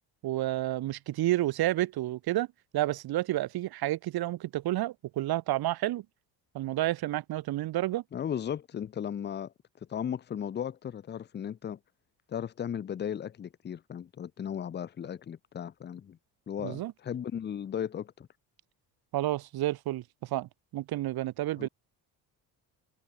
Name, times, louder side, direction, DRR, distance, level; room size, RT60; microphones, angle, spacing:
voice 1, 0.2-2.5 2.7-6.0 6.5-8.0 16.6-16.9 19.1-21.7, right 15 dB, 60° right, 1.3 m, -30 dB
voice 2, 8.1-9.5 9.9-11.8 12.3-16.2 16.5-18.3 21.6-21.7, left 9 dB, 25° left, 0.6 m, -36 dB
cardioid pair, 120°, 41 cm